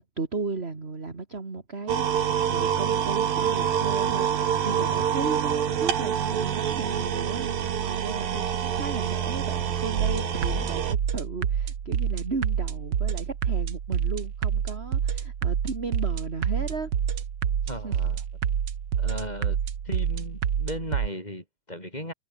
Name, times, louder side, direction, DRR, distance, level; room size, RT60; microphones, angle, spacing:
voice 1, 0.0-16.9 17.6-18.0, right 4 dB, 20° right, 2.1 m, -35 dB
sound 1, 1.9-11.0, right 9 dB, 80° right, 4.2 m, -26 dB
sound 2, 10.0-21.1, right 8 dB, 55° right, 1.2 m, -28 dB
voice 2, 17.7-18.2 19.0-19.6 19.9-22.1, left 1 dB, 10° left, 7.1 m, -36 dB
omnidirectional pair, 4.0 m